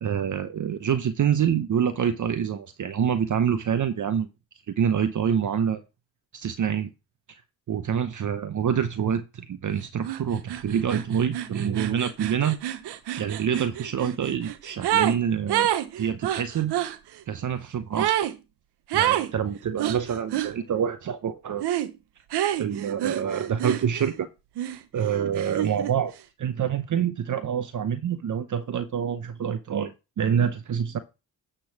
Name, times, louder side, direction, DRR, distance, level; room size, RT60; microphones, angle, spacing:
voice 1, 0.0-4.3 4.7-5.8 6.3-6.9 7.3-7.4 7.7-12.6 13.2-15.7 16.0-16.8 17.3-18.2 18.9-21.6 22.5-24.3 24.9-26.1 26.4-31.0, right 8 dB, 50° right, 0.9 m, -26 dB
sound 1, 10.1-10.2 10.5-15.2 15.5-17.0 18.0-18.4 18.9-19.3 19.8-20.5 21.6-21.9 22.3-24.2 24.6-25.9, right 12 dB, 75° right, 0.9 m, -28 dB
10.5 x 3.8 x 5.9 m
supercardioid pair, 60°, 40 cm